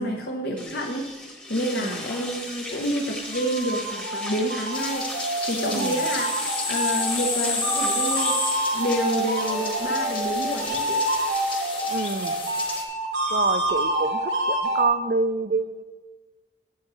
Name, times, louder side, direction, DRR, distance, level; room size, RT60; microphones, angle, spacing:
voice 1, 0.0-5.0 5.5-8.3 8.7-11.0, equal, 65° left, 0 dB, 0.9 m, -29 dB
sound 1, 0.6-14.1, left 1 dB, 5° left, 1.0 m, -38 dB
sound 2, 3.1-14.8, right 1 dB, 85° right, 2.2 m, -27 dB
sound 3, 4.7-12.8, left 4 dB, 30° left, 1.3 m, -31 dB
voice 2, 5.6-5.9 11.9-12.4 13.3-15.8, right 4 dB, 50° right, 12 dB, 0.5 m, -27 dB
13.0 x 8.8 x 3.1 m, 1.3 s
head